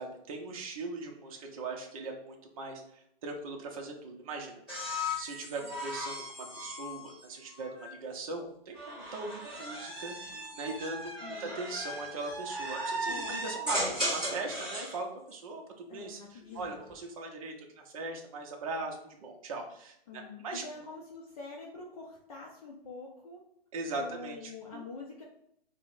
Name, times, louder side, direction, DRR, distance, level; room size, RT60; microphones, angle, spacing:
voice 1, 0.0-20.6 23.7-24.8, right 3 dB, 35° right, 2 dB, 0.6 m, -40 dB
sound 1, 4.7-7.9 8.7-15.0 16.4-16.9, equal, 5° right, 1.1 m, -37 dB
voice 2, 11.2-11.5 13.0-13.4 15.9-16.8 20.1-23.4 24.0-25.2, left 3 dB, 35° left, -2 dB, 0.5 m, -46 dB
4.4 x 2.1 x 2.5 m, 0.71 s
hypercardioid pair, 155°, 30 cm